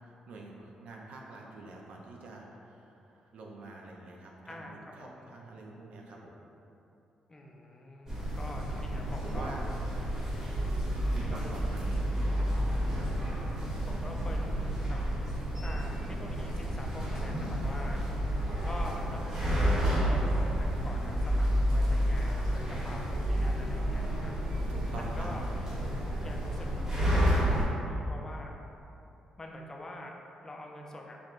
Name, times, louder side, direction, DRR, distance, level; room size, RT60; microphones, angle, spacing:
voice 1, 0.3-6.3 9.2-9.7 11.1-13.3 24.7-25.3, right 2 dB, 75° right, -1 dB, 0.6 m, -46 dB
voice 2, 4.5-5.3 7.3-9.6 11.3-11.6 12.3-12.7 13.9-15.0 15.6-18.0 18.6-24.5 25.0-25.4 26.2-26.8 27.1-28.6 29.4-30.1 30.4-31.2, left 1 dB, 25° left, 0 dB, 0.4 m, -45 dB
sound 1, 8.1-27.6, equal, 35° right, 1.2 m, -32 dB
sound 2, 10.5-24.6, equal, 10° right, 1.0 m, -33 dB
5.0 x 3.2 x 2.5 m, 2.9 s
cardioid pair, 110°, 2 cm